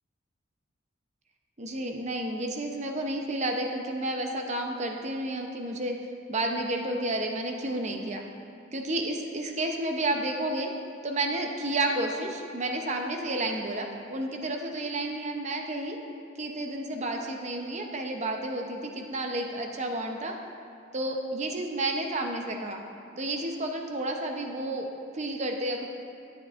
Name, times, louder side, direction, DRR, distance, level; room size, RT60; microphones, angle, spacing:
voice 1, 1.6-5.9 6.3-8.2 8.7-10.7 11.0-16.0 16.4-20.4 20.9-22.8 23.2-25.9, right 1 dB, 35° right, 3 dB, 0.7 m, -31 dB
11.0 x 9.7 x 2.5 m, 2.5 s
head